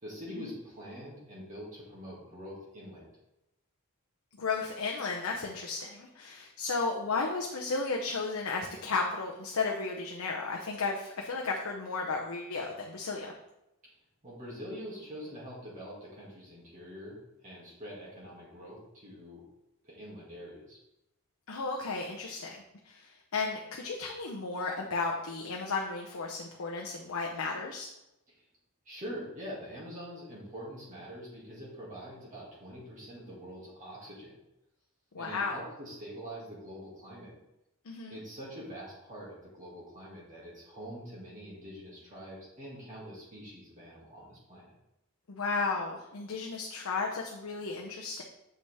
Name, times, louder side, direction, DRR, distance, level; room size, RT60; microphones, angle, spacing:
voice 1, 0.0-3.1 13.8-14.0 14.2-19.4 19.8-20.8 28.3-28.4 28.9-34.4 35.1-37.4 38.1-44.7, equal, 35° right, -7 dB, 2.1 m, -45 dB
voice 2, 4.4-13.4 21.5-27.9 35.1-35.5 37.8-38.2 45.3-48.2, left 4 dB, 80° left, 0 dB, 0.7 m, -34 dB
6.9 x 5.3 x 3.4 m, 0.91 s
head